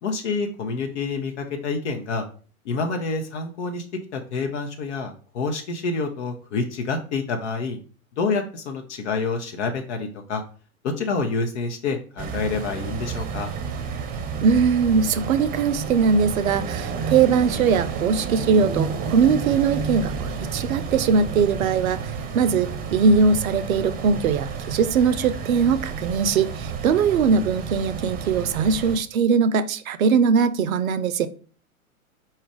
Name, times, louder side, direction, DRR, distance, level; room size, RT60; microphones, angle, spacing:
voice 1, 0.0-2.2 2.6-3.8 4.1-7.8 8.2-10.4 10.8-13.5, left 4 dB, 55° left, 4 dB, 0.8 m, -27 dB
sound 1, 12.2-29.0, right 5 dB, 20° right, 0.8 m, -31 dB
voice 2, 14.4-31.3, right 5 dB, 70° right, 13 dB, 0.6 m, -21 dB
4.4 x 2.4 x 4.7 m, 0.40 s
figure-of-eight pair, 100°, 43 cm